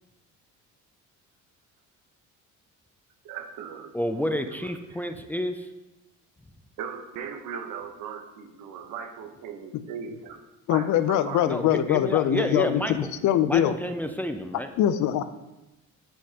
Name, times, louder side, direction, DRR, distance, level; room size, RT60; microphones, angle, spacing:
voice 1, 3.2-3.9 4.6-4.7 6.8-10.4 10.7-11.5, right 7 dB, 85° right, 5 dB, 1.0 m, -38 dB
voice 2, 3.9-5.7 11.5-13.1 13.4-14.7, equal, 5° left, 6 dB, 0.3 m, -30 dB
voice 3, 10.7-13.7 14.8-15.2, left 11 dB, 70° left, 13 dB, 0.5 m, -23 dB
10.0 x 5.2 x 2.9 m, 1.0 s
cardioid pair, 130°, 31 cm